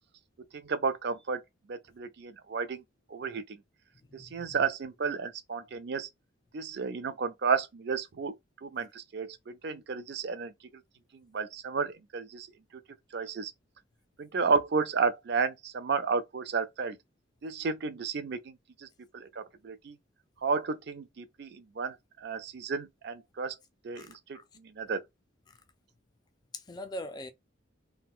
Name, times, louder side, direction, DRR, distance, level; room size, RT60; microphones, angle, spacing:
voice 1, 0.5-1.4 1.7-2.8 3.1-3.6 4.1-6.1 6.5-8.3 8.6-10.5 11.1-12.5 13.1-13.5 14.2-17.0 17.4-18.9 19.1-20.0 20.4-23.6 23.8-25.0, right 5 dB, 55° right, 0.4 m, -32 dB
voice 2, 4.1-4.6 24.0-24.4 26.5-27.3, left 1 dB, 20° left, 0.3 m, -42 dB
2.4 x 2.2 x 3.6 m
head